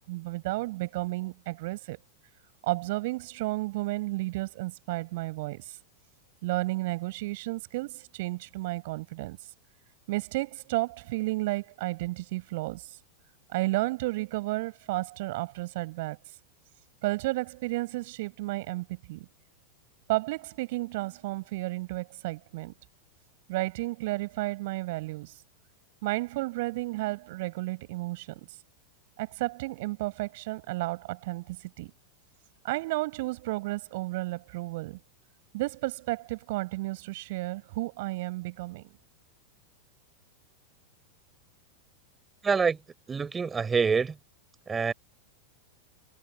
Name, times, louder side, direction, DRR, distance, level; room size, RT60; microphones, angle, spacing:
voice 1, 0.1-2.0 2.6-5.8 6.4-9.4 10.1-12.9 13.5-16.2 17.0-19.3 20.1-22.7 23.5-25.3 26.0-28.5 29.2-31.9 32.6-35.0 35.5-38.9, right 20 dB, 50° right, 6.0 m, -32 dB
voice 2, 42.4-42.8 43.1-44.1 44.7-44.9, right 5 dB, 15° right, 4.5 m, -26 dB
figure-of-eight pair, 90°, 0 cm